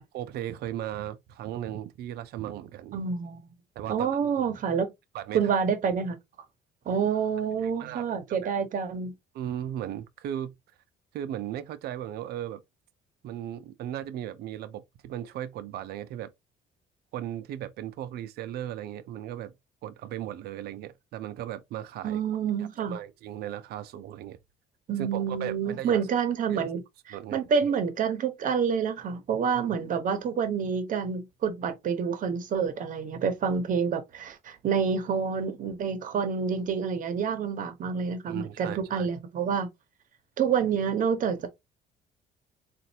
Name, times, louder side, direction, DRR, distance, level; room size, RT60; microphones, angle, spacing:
voice 1, 0.1-3.0 3.8-4.5 5.1-5.4 7.6-8.5 9.3-10.5 11.1-12.6 13.2-16.3 17.1-19.5 19.8-22.2 22.6-24.4 25.0-26.1 26.5-26.6 27.1-27.4 29.5-29.6 38.3-39.1, right 11 dB, 70° right, 0.5 m, -37 dB
voice 2, 2.9-3.5 3.9-4.9 5.3-6.2 6.9-9.1 22.0-23.0 24.9-26.8 27.3-39.7 40.4-41.5, right 6 dB, 50° right, 1.0 m, -28 dB
4.0 x 2.5 x 2.8 m
cardioid pair, 110°, 17 cm